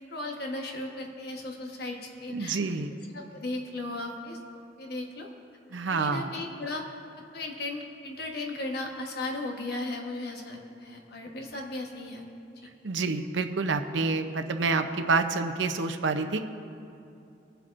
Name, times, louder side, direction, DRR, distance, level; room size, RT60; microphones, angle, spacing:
voice 1, 0.1-2.6 3.1-4.4 4.8-5.3 5.9-6.8 7.3-12.3, left 2 dB, 60° left, 1 dB, 1.2 m, -36 dB
voice 2, 2.3-2.9 5.7-6.4 12.8-16.4, right 4 dB, 85° right, 7 dB, 0.7 m, -28 dB
22.5 x 7.8 x 2.6 m, 2.7 s
head